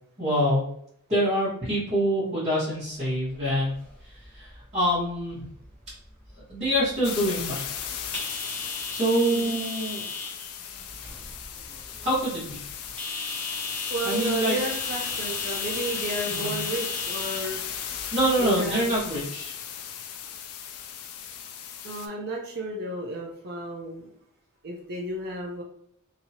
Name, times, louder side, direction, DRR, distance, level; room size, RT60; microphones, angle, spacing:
voice 1, 0.2-0.6 1.1-3.7 4.0-5.5 6.5-7.6 8.9-10.0 12.0-12.6 14.0-14.6 16.3-16.5 18.1-19.6, equal, 30° right, -14 dB, 1.4 m, -25 dB
sound 1, 3.1-19.2, left 2 dB, 5° left, 0.8 m, -38 dB
sound 2, 7.0-22.1, left 8 dB, 70° left, 0.4 m, -36 dB
voice 2, 13.9-17.6 18.4-18.9 21.8-24.1 24.6-25.6, right 1 dB, 50° right, -2 dB, 0.6 m, -32 dB
3.0 x 2.8 x 2.8 m, 0.69 s
head